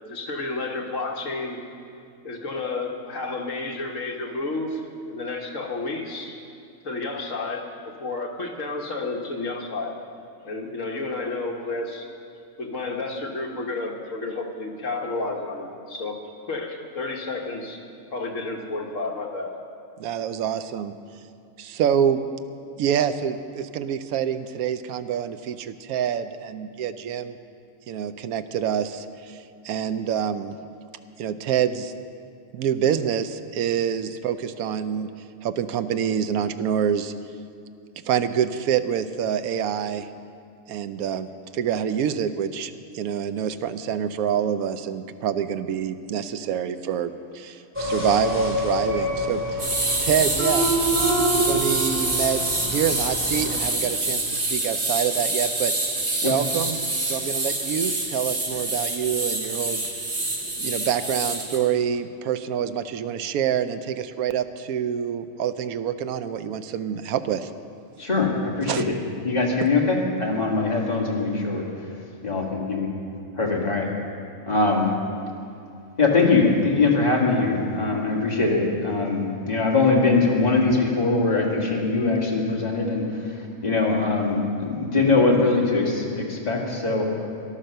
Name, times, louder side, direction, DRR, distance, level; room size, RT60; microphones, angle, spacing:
voice 1, 0.1-1.6 2.2-6.4 6.8-7.6 8.0-9.9 10.4-12.1 12.6-16.2 16.5-17.8 18.1-19.5, left 3 dB, 60° left, 1 dB, 1.7 m, -31 dB
voice 2, 20.0-20.9 21.6-22.2 22.8-27.4 27.9-29.4 29.6-30.6 31.2-31.9 32.5-35.1 35.4-37.1 38.1-40.1 40.7-49.7 50.0-50.9 51.2-55.7 56.2-59.8 60.6-67.5 68.6-68.8, right 8 dB, 85° right, 10 dB, 1.1 m, -26 dB
sound 1, 47.7-53.6, right 1 dB, 10° right, 2.6 m, -26 dB
sound 2, 49.6-61.6, right 2 dB, 50° right, 2.2 m, -26 dB
voice 3, 68.0-68.9 69.2-71.6 72.2-72.9 73.4-73.9 74.5-74.9 76.0-83.0 83.6-87.1, left 3 dB, 30° left, -2 dB, 2.1 m, -22 dB
13.5 x 11.5 x 6.6 m, 2.4 s
omnidirectional pair, 1.5 m